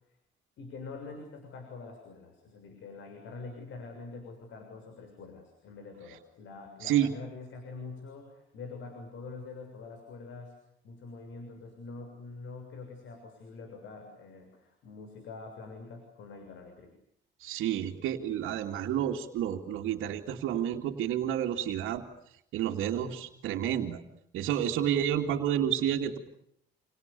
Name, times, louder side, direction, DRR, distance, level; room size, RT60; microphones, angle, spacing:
voice 1, 0.6-10.5 10.8-16.9, left 3 dB, 75° left, 6 dB, 6.8 m, -45 dB
voice 2, 17.4-22.0 22.5-24.0 24.3-26.2, right 10 dB, 90° right, -3 dB, 2.6 m, -30 dB
30.0 x 28.5 x 7.0 m, 0.75 s
cardioid pair, 90°, 20 cm